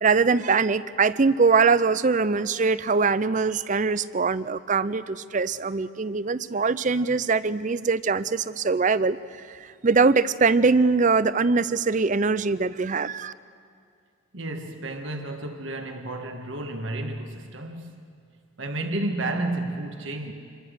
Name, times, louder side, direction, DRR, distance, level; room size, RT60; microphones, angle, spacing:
voice 1, 0.0-9.2 9.8-13.3, right 4 dB, 40° right, 16 dB, 0.5 m, -22 dB
voice 2, 14.3-18.1 18.6-20.3, right 2 dB, 70° right, 4 dB, 1.7 m, -31 dB
27.0 x 23.5 x 6.6 m, 2.2 s
head